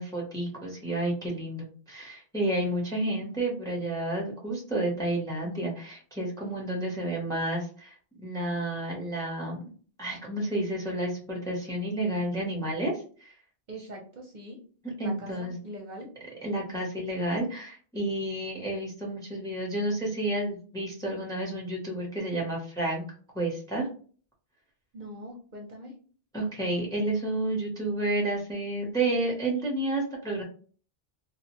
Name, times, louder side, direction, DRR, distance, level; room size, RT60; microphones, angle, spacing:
voice 1, 0.0-9.6 10.0-13.3 15.0-15.6 16.4-23.0 23.3-23.9 26.3-30.4, right 1 dB, 5° left, -1 dB, 0.5 m, -30 dB
voice 2, 13.7-14.6 15.0-16.1 24.9-25.9, equal, 50° right, -1 dB, 0.7 m, -42 dB
2.8 x 2.0 x 2.9 m, 0.43 s
omnidirectional pair, 1.1 m